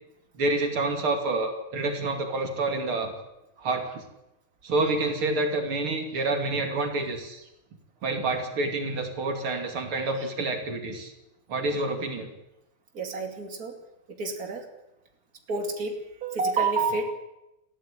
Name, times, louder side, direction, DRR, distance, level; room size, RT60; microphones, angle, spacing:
voice 1, 0.4-3.1 3.6-4.0 4.6-7.4 8.0-11.1 11.5-12.3, right 2 dB, 85° right, 4 dB, 3.5 m, -28 dB
voice 2, 12.9-13.7 14.2-14.6 15.5-17.1, right 4 dB, 45° right, 3 dB, 3.1 m, -28 dB
21.0 x 15.0 x 9.8 m, 0.91 s
omnidirectional pair, 2.3 m